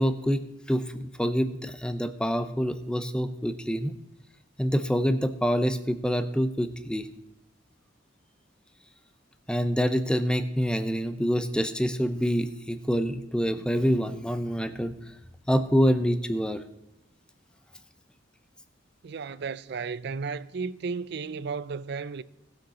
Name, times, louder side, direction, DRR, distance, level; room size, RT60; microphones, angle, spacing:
voice 1, 0.0-4.0 4.6-7.1 9.5-14.9 15.5-16.6, equal, 5° left, 0.6 m, -26 dB
voice 2, 19.0-22.2, right 5 dB, 60° right, 0.4 m, -34 dB
18.0 x 6.4 x 4.2 m
head